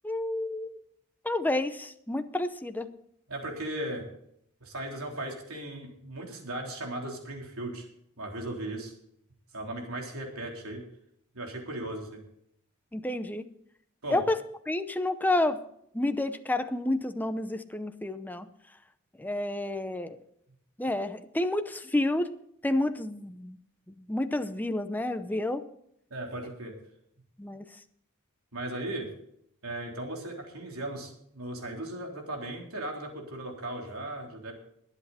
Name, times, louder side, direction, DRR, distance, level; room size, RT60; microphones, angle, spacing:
voice 1, 0.0-0.8 1.2-2.9 12.9-13.4 14.1-14.4 14.7-15.6 15.9-18.5 19.2-20.2 20.8-22.3 22.6-23.6 24.0-25.6 27.4-27.6, left 1 dB, 10° left, 9 dB, 0.7 m, -29 dB
voice 2, 3.3-4.1 4.6-7.9 8.2-8.9 9.5-10.8 11.3-12.2 14.0-14.2 26.1-26.8 28.5-29.1 29.6-34.5, right 1 dB, 70° right, 1 dB, 3.7 m, -37 dB
21.0 x 8.2 x 4.2 m, 0.71 s
head